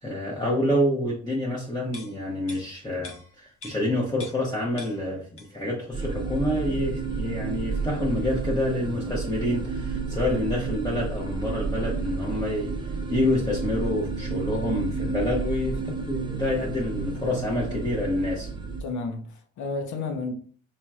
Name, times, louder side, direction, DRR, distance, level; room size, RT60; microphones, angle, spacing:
voice 1, 0.0-12.7 13.1-18.5, left 1 dB, 15° left, 1.0 m, -27 dB
sound 1, 1.9-4.5 4.8-5.7 6.1-6.2, left 3 dB, 50° left, 1.0 m, -45 dB
sound 2, 5.9-18.8, right 4 dB, 15° right, 0.6 m, -31 dB
voice 2, 18.8-20.3, left 3 dB, 75° left, 0.9 m, -31 dB
4.5 x 2.8 x 2.4 m
cardioid pair, 90°, 30 cm